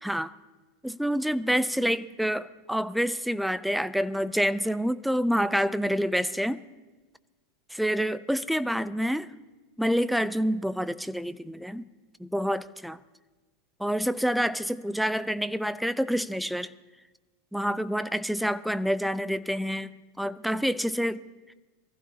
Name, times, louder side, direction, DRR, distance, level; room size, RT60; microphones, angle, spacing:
voice 1, 0.8-6.6 7.7-9.3 9.8-11.8 12.2-13.0 13.8-16.7 17.5-19.9 20.2-21.2, equal, ahead, 15 dB, 0.5 m, -27 dB
23.5 x 15.0 x 2.8 m, 1.3 s
hypercardioid pair, 90°, 0 cm